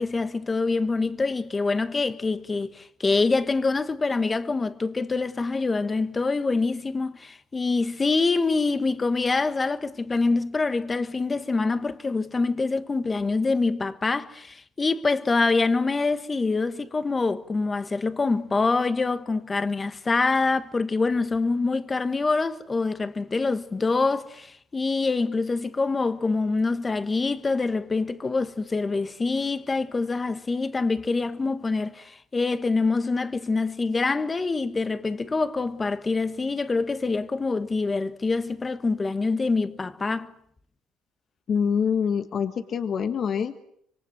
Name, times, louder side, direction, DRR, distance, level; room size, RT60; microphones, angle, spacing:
voice 1, 0.0-40.3, left 3 dB, 25° left, 1.4 m, -25 dB
voice 2, 41.5-43.6, left 7 dB, 50° left, 1.6 m, -25 dB
26.5 x 24.5 x 7.8 m
cardioid pair, 105°, 0 cm